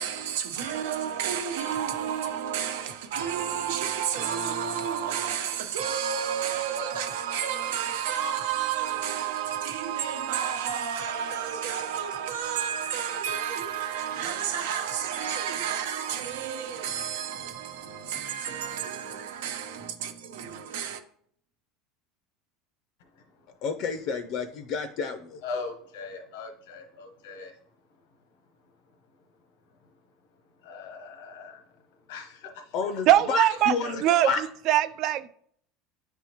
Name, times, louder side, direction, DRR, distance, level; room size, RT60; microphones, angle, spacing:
voice 1, 0.0-21.0, right 8 dB, 90° right, 0.9 m, -31 dB
voice 2, 23.6-25.4 32.7-34.4, left 5 dB, 50° left, 0.5 m, -30 dB
voice 3, 25.4-27.5 30.6-31.6 32.1-32.7 33.8-34.0, left 4 dB, 80° left, 1.0 m, -39 dB
voice 4, 33.1-35.3, right 13 dB, 50° right, 0.4 m, -22 dB
10.0 x 3.5 x 3.0 m
supercardioid pair, 145°, 0 cm